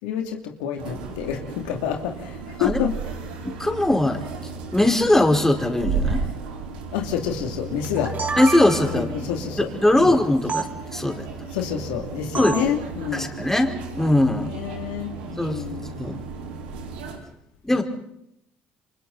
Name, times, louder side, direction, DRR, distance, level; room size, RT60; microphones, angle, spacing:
voice 1, 0.0-2.9 6.9-8.1 8.9-9.7 10.0-10.1 11.5-13.3 14.4-15.9 17.8-17.9, left 9 dB, 85° left, 3 dB, 2.8 m, -28 dB
sound 1, 0.8-17.2, right 5 dB, 90° right, 4.5 m, -34 dB
voice 2, 3.4-4.2 4.7-6.2 8.4-9.3 9.6-10.7 10.9-11.3 12.4-12.6 13.1-14.5 15.4-15.6 16.0-16.2 17.6-17.8, left 1 dB, 10° left, 4 dB, 4.5 m, -20 dB
sound 2, 7.8-9.1 10.5-10.7 12.3-12.8, right 4 dB, 35° right, 3.2 m, -28 dB
29.5 x 25.0 x 4.2 m, 0.77 s
hypercardioid pair, 65°, 5 cm